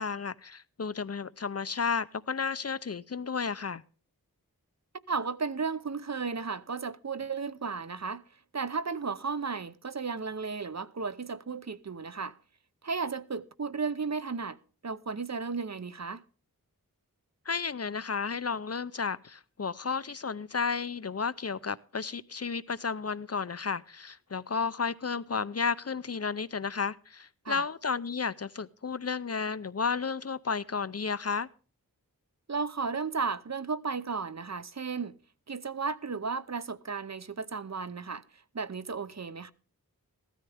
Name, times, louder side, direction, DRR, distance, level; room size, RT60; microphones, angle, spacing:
voice 1, 0.0-3.8 17.5-31.5, left 5 dB, 45° left, 0.5 m, -32 dB
voice 2, 5.1-8.2 8.5-12.3 12.8-14.6 14.8-16.2 27.4-27.6 32.5-35.1 35.5-38.2 38.5-39.5, right 5 dB, 50° right, 0.8 m, -34 dB
16.0 x 13.0 x 3.4 m
wide cardioid pair, 65°, 35 cm